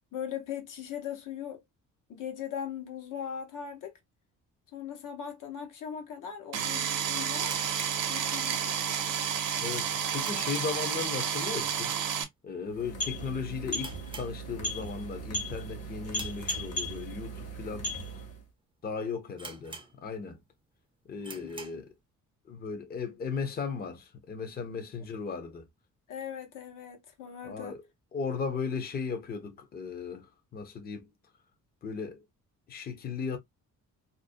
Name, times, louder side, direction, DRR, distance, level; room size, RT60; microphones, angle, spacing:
voice 1, 0.1-1.6 2.1-4.0 4.7-7.6 8.1-8.7 21.4-21.8 26.1-27.8, left 8 dB, 75° left, 0.9 m, -39 dB
sound 1, 6.5-12.2, right 8 dB, 80° right, 0.7 m, -31 dB
sound 2, 7.4-8.8 9.0-9.1 9.7-11.0 11.3-11.6 11.9-12.0 12.7-12.9 13.2-13.3 13.7-14.9 15.2-15.5 16.1-17.2 17.8-17.9 18.5-18.6 18.8-18.9 19.4-20.3 20.7-20.8 21.2-21.9, right 3 dB, 15° right, 0.5 m, -47 dB
voice 2, 9.6-12.0 12.4-17.9 18.8-20.4 21.1-21.9 22.5-25.7 27.4-27.8 28.1-31.1 31.8-32.2 32.7-33.4, left 5 dB, 30° left, 0.6 m, -36 dB
sound 3, 12.6-18.4, equal, 50° left, 0.9 m, -37 dB
2.5 x 2.1 x 2.4 m
cardioid pair, 130°, 32 cm